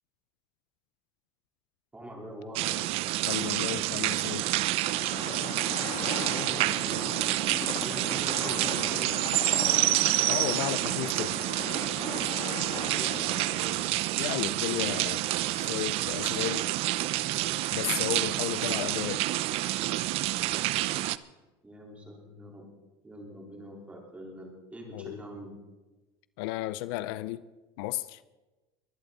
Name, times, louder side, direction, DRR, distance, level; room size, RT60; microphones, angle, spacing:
voice 1, 1.9-2.7 6.2-9.7 12.9-13.4 21.6-22.7 23.0-25.5, right 1 dB, 10° right, -1 dB, 4.2 m, -43 dB
sound 1, 2.6-21.2, right 17 dB, 50° right, 0.6 m, -28 dB
voice 2, 3.3-4.6 10.3-11.4 14.2-15.2 15.6-16.6 17.7-19.4 24.9-25.2 26.4-27.4 27.8-28.2, left 16 dB, 80° left, 16 dB, 0.6 m, -34 dB
sound 2, 4.7-13.9, left 7 dB, 40° left, 1.5 m, -39 dB
23.0 x 11.5 x 4.2 m, 1.1 s
cardioid pair, 150°, 13 cm